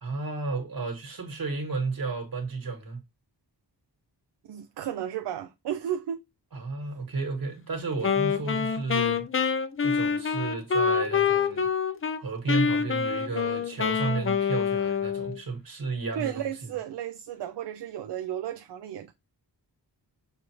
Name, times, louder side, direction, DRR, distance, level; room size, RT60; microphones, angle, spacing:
voice 1, 0.0-3.0 6.5-9.3 9.8-11.7 12.2-16.5, right 3 dB, 55° right, 1.6 m, -32 dB
voice 2, 4.5-6.2 16.2-19.1, right 10 dB, 70° right, 0.5 m, -33 dB
Wind instrument woodwind instrument, 8.0-12.2 12.5-15.4, left 6 dB, 30° left, 0.4 m, -26 dB
6.5 x 2.5 x 2.9 m
wide cardioid pair, 155°, 43 cm